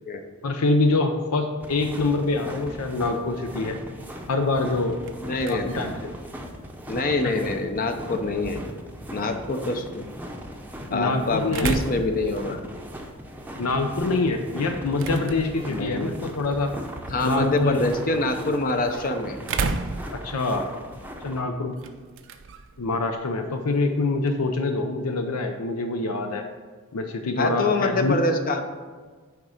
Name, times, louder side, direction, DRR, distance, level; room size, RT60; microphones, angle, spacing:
voice 1, 0.4-3.8 4.3-5.0 5.5-6.1 7.2-7.4 10.9-11.7 13.6-16.7 17.2-17.9 20.1-20.7 21.2-21.7 22.8-26.5 26.9-28.2, left 3 dB, 85° left, 5 dB, 0.6 m, -25 dB
sound 1, 1.6-21.4, equal, 10° right, 0.6 m, -39 dB
sound 2, 4.6-24.5, right 4 dB, 60° right, 0.5 m, -38 dB
voice 2, 5.2-5.8 6.9-8.6 9.1-10.0 10.9-12.6 15.7-16.1 17.1-19.4 27.4-28.6, left 2 dB, 40° left, 6 dB, 0.6 m, -25 dB
9.2 x 3.6 x 6.5 m, 1.5 s
head